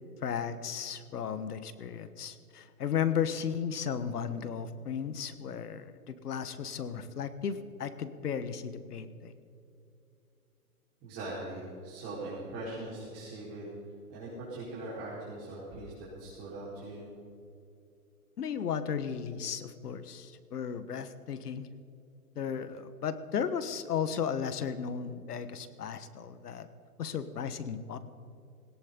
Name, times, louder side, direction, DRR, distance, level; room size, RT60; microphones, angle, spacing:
voice 1, 0.2-9.3 18.4-21.7 22.3-26.7 27.0-28.0, left 7 dB, 80° left, 12 dB, 1.4 m, -35 dB
voice 2, 11.0-13.7 14.1-17.1, right 2 dB, 30° right, -7 dB, 4.6 m, -41 dB
18.5 x 17.5 x 3.9 m, 2.6 s
hypercardioid pair, 135°, 46 cm